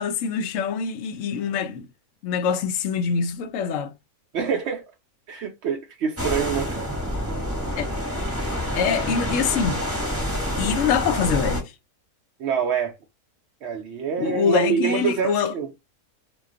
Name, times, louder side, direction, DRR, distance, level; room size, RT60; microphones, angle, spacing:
voice 1, 0.0-1.9 2.2-3.9 7.8-7.9 8.7-9.8 10.6-11.7 14.2-15.5, left 6 dB, 65° left, 0.8 m, -24 dB
voice 2, 4.3-4.8 5.3-6.9 12.4-12.9 13.6-15.7, right 7 dB, 65° right, 0.7 m, -26 dB
sound 1, 6.2-11.6, equal, 10° right, 0.9 m, -27 dB
2.3 x 2.3 x 3.6 m
omnidirectional pair, 1.6 m